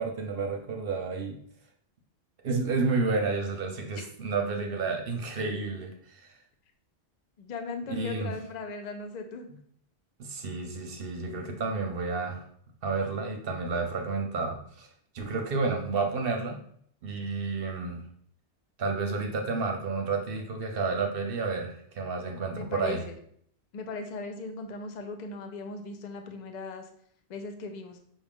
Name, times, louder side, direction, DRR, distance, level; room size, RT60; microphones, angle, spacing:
voice 1, 0.0-1.4 2.4-6.4 7.9-8.3 10.2-12.4 12.8-14.9 15.1-16.6 17.0-18.0 18.8-23.0, right 4 dB, 60° right, 3 dB, 0.7 m, -30 dB
voice 2, 7.4-9.5 22.5-23.2 23.7-26.9 27.3-28.0, left 3 dB, 50° left, 6 dB, 0.6 m, -38 dB
5.5 x 2.4 x 3.5 m, 0.64 s
omnidirectional pair, 1.2 m